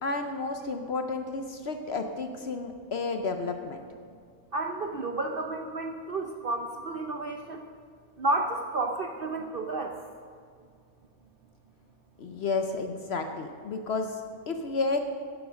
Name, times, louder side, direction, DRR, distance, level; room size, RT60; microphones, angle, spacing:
voice 1, 0.0-3.8 12.2-15.0, left 3 dB, 55° left, 6 dB, 0.8 m, -31 dB
voice 2, 4.5-7.7 8.2-9.9, right 2 dB, 55° right, 3 dB, 0.6 m, -31 dB
11.0 x 8.2 x 6.3 m, 2.2 s
omnidirectional pair, 1.6 m